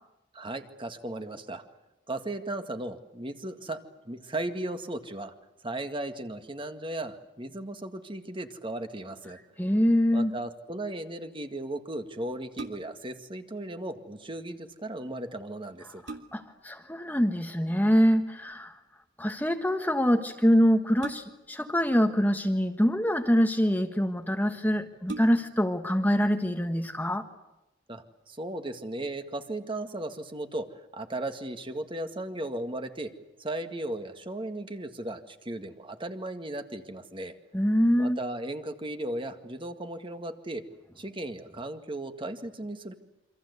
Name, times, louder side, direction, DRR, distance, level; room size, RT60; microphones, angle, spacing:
voice 1, 0.3-1.6 2.1-5.3 5.6-9.4 10.1-16.0 27.9-30.7 30.9-33.1 33.4-37.4 38.0-40.6 41.0-42.9, right 1 dB, 25° right, 7 dB, 1.9 m, -36 dB
voice 2, 9.6-10.3 15.9-18.8 19.2-27.3 37.5-38.2, equal, 10° left, 6 dB, 1.4 m, -25 dB
sound 1, 12.5-13.1 15.1-15.2 15.7-16.6 18.2-18.5 21.0-21.6 22.6-23.3 24.0-24.1 24.4-24.5 25.0-25.7 26.2-26.3, right 3 dB, 75° right, 3.0 m, -42 dB
28.0 x 25.5 x 8.3 m, 0.95 s
head